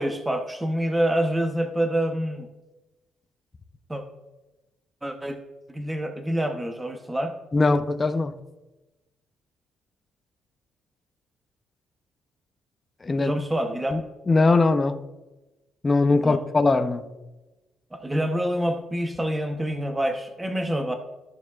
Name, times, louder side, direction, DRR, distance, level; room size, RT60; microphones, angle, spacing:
voice 1, 0.0-2.5 3.9-4.0 5.0-5.4 5.7-7.3 13.2-13.9 16.2-16.4 17.9-21.0, right 1 dB, 10° right, 4 dB, 0.8 m, -26 dB
voice 2, 7.5-8.3 13.0-13.3 13.9-14.0 14.3-15.0 15.8-17.0, left 3 dB, 25° left, 8 dB, 0.6 m, -21 dB
14.0 x 6.8 x 2.4 m, 1.0 s
cardioid pair, 120°, 0 cm